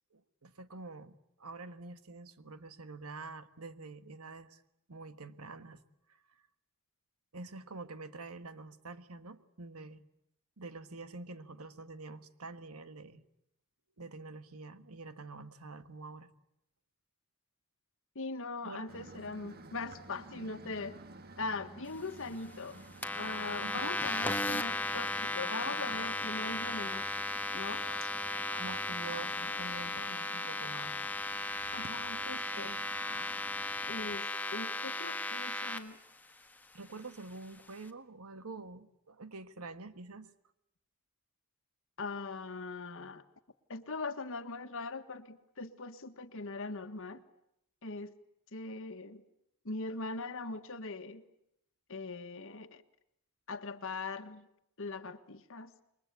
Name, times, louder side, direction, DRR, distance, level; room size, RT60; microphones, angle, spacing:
voice 1, 0.1-4.6 4.9-5.8 6.1-6.2 7.3-10.0 10.6-13.2 14.0-16.3 18.6-18.9 23.6-24.0 28.6-30.9 36.7-40.3, right 3 dB, 85° right, 11 dB, 1.5 m, -47 dB
voice 2, 18.1-21.0 21.4-22.8 23.1-27.2 27.5-27.9 31.7-32.9 33.9-36.0 42.0-43.2 43.7-47.2 47.8-48.1 48.5-49.2 49.6-51.2 51.9-52.8 53.5-54.5 54.8-55.7, left 3 dB, 65° left, 8 dB, 1.6 m, -41 dB
sound 1, 18.9-34.2, right 3 dB, 45° right, 1.5 m, -52 dB
sound 2, 23.0-35.8, left 2 dB, 10° left, 1.6 m, -36 dB
28.5 x 22.5 x 8.3 m, 0.80 s
head